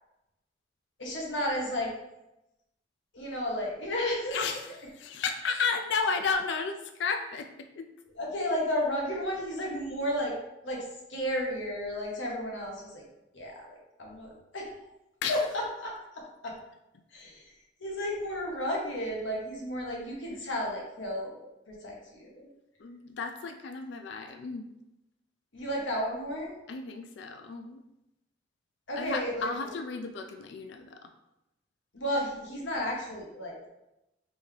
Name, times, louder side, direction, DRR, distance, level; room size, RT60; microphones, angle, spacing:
voice 1, 1.0-1.9 3.1-4.4 8.2-10.4 10.6-13.0 13.3-13.7 14.0-14.8 15.3-15.4 15.8-16.5 17.1-17.4 17.8-22.5 25.5-26.5 28.9-29.5 31.9-33.6, equal, 80° left, -2 dB, 1.2 m, -33 dB
voice 2, 4.3-7.9 15.2-15.7 20.3-20.6 22.8-24.7 26.7-27.8 29.0-31.1, left 5 dB, 65° left, 6 dB, 0.3 m, -33 dB
4.3 x 3.4 x 3.3 m, 0.91 s
head